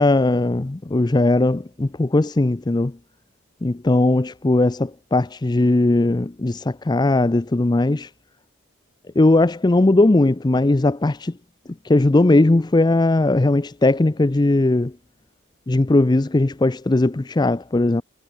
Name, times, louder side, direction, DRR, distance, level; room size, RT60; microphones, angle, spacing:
voice 1, 0.0-3.0 3.6-8.1 9.2-11.3 11.8-14.9 15.7-18.0, left 2 dB, 20° left, 0.5 m, -18 dB
head